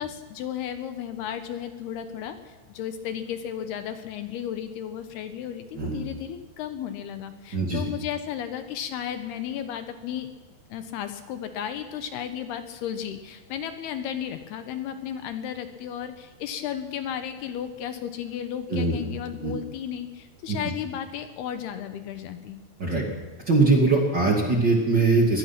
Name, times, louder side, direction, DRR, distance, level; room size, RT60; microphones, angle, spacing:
voice 1, 0.0-10.3 10.7-22.6 22.9-23.1, left 9 dB, 75° left, 9 dB, 2.8 m, -34 dB
voice 2, 7.5-7.8 18.7-19.0 19.4-19.5 20.5-20.6 22.8-23.0 23.5-25.4, right 3 dB, 30° right, 0 dB, 2.2 m, -21 dB
23.5 x 18.5 x 5.9 m, 1.4 s
omnidirectional pair, 5.0 m